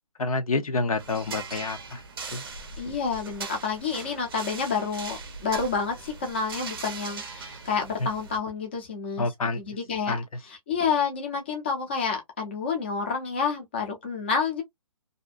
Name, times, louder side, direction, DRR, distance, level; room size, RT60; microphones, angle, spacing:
voice 1, 0.2-2.0 2.3-2.4 9.2-9.6 10.1-10.2, left 3 dB, 75° left, 0.6 m, -28 dB
sound 1, 1.0-8.4, right 5 dB, 40° right, 0.5 m, -40 dB
voice 2, 2.8-14.6, left 5 dB, 20° left, 0.5 m, -29 dB
2.6 x 2.1 x 2.4 m
hypercardioid pair, 170°, 19 cm